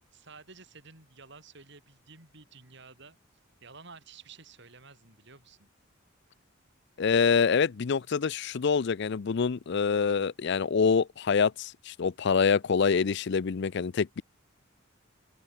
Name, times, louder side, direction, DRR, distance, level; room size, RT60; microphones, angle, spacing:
voice 1, 0.1-3.2 3.6-5.7, right 4 dB, 60° right, 6.0 m, -52 dB
voice 2, 7.0-14.2, left 5 dB, 55° left, 0.5 m, -26 dB
open air
head